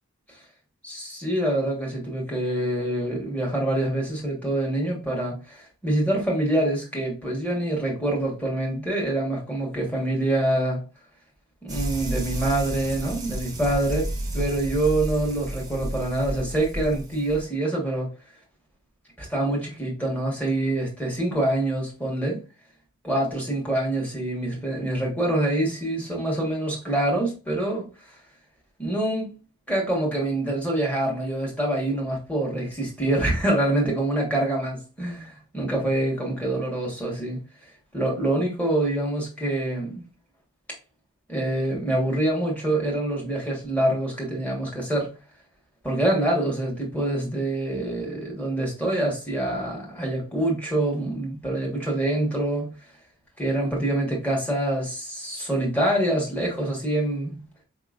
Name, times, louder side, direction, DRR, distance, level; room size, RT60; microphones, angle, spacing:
voice 1, 0.8-10.8 11.6-18.1 19.2-22.4 23.0-27.9 28.8-29.4 29.7-37.4 37.9-40.0 41.3-45.1 45.8-52.7 53.4-57.4, right 1 dB, 5° left, 1.4 m, -25 dB
sound 1, 11.7-17.4, right 1 dB, 15° right, 0.9 m, -32 dB
4.9 x 2.9 x 2.4 m
head